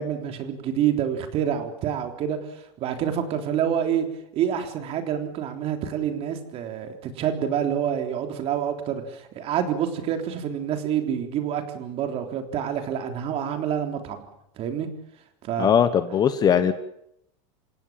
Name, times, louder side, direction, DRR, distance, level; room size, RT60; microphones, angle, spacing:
voice 1, 0.0-2.4 2.8-4.1 4.3-14.2 14.6-14.9 15.4-15.7, right 9 dB, 35° right, 6 dB, 3.5 m, -27 dB
voice 2, 15.6-16.7, left 8 dB, 25° left, 12 dB, 1.2 m, -20 dB
28.5 x 16.5 x 7.5 m, 0.77 s
supercardioid pair, 150°, 17 cm